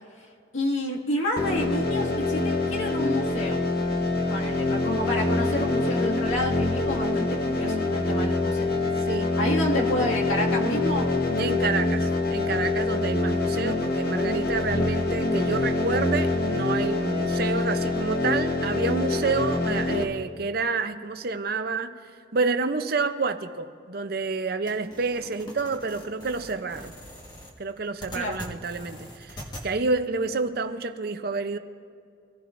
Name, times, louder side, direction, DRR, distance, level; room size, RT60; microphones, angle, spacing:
voice 1, 0.5-3.6 4.3-8.8 9.4-11.1 28.1-28.4, left 1 dB, 85° left, -2 dB, 2.0 m, -29 dB
sound 1, 1.4-20.0, left 2 dB, 50° left, 0.9 m, -25 dB
voice 2, 9.0-9.4 11.4-22.0 22.3-26.9 27.6-31.6, right 4 dB, 50° right, 9 dB, 0.6 m, -29 dB
sound 2, 24.7-29.7, equal, 20° left, 1.4 m, -43 dB
24.0 x 15.5 x 2.6 m, 2.3 s
head